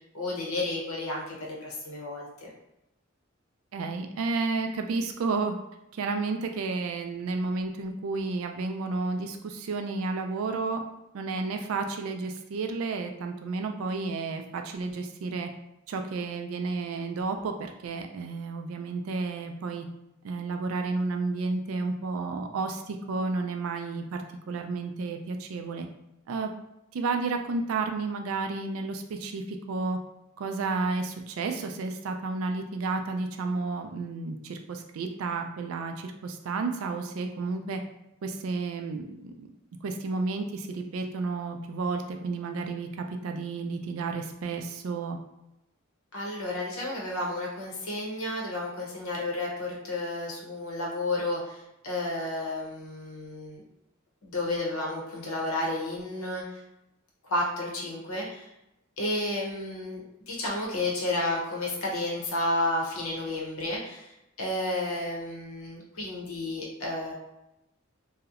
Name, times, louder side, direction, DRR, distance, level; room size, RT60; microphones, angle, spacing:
voice 1, 0.1-2.5 46.1-53.6 54.2-56.6 57.2-58.5 59.0-64.1 64.4-67.1, left 2 dB, 80° left, -2 dB, 0.7 m, -32 dB
voice 2, 3.7-5.5 6.0-10.8 11.1-15.5 15.9-19.9 20.2-25.9 26.3-26.5 26.9-30.0 30.4-37.8 38.2-39.5 39.8-45.2, right 3 dB, 75° right, 5 dB, 0.3 m, -31 dB
2.7 x 2.0 x 2.4 m, 0.90 s
head